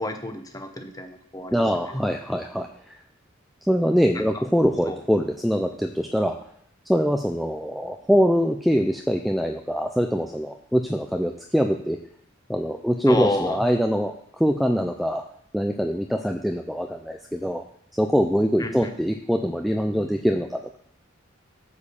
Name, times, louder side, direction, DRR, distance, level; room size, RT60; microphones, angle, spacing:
voice 1, 0.0-1.6 1.9-2.0 4.1-4.2 4.9-5.0 13.1-13.6 18.6-18.9, left 2 dB, 20° left, 5 dB, 1.1 m, -29 dB
voice 2, 1.5-2.7 3.7-6.4 6.9-12.0 12.5-15.2 15.5-17.6 17.9-20.8, equal, ahead, 3 dB, 0.4 m, -23 dB
8.3 x 5.0 x 7.1 m, 0.67 s
head